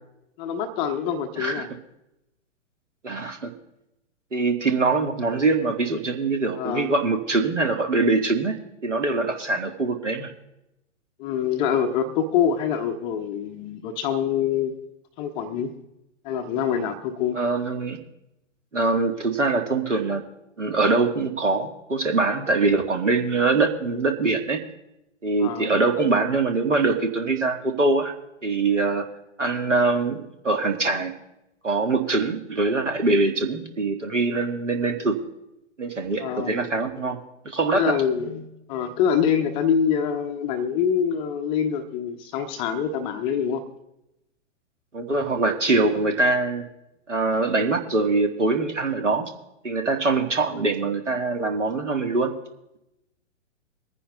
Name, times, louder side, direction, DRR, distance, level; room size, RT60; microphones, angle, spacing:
voice 1, 0.4-1.7 6.6-6.9 11.2-14.7 15.2-15.7 16.2-17.4 25.4-25.7 36.2-36.7 37.7-43.6 50.6-50.7, left 7 dB, 15° left, 5 dB, 0.5 m, -25 dB
voice 2, 1.4-1.7 3.0-3.5 4.3-8.6 8.8-10.3 17.3-18.0 18.7-20.2 20.6-24.6 25.2-28.1 28.4-29.1 29.4-31.1 31.6-35.2 35.8-37.2 37.4-38.0 44.9-46.6 47.1-49.3 49.6-52.3, right 3 dB, 75° right, 5 dB, 1.6 m, -23 dB
24.0 x 9.9 x 2.3 m, 0.90 s
figure-of-eight pair, 110°, 36 cm